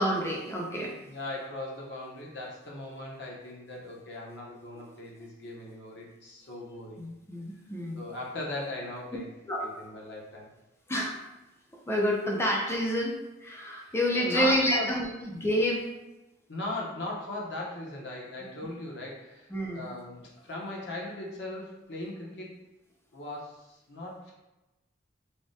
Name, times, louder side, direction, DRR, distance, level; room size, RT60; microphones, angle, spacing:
voice 1, 0.0-0.9 4.7-4.8 7.0-8.1 9.5-9.7 10.9-11.2 11.9-15.9 19.5-19.9, equal, 15° left, -1 dB, 0.4 m, -28 dB
voice 2, 1.0-7.0 7.9-9.3 9.6-10.5 13.6-15.0 16.5-22.6 23.1-24.3, left 1 dB, 60° left, -3 dB, 0.7 m, -38 dB
3.4 x 2.1 x 2.6 m, 1.0 s
head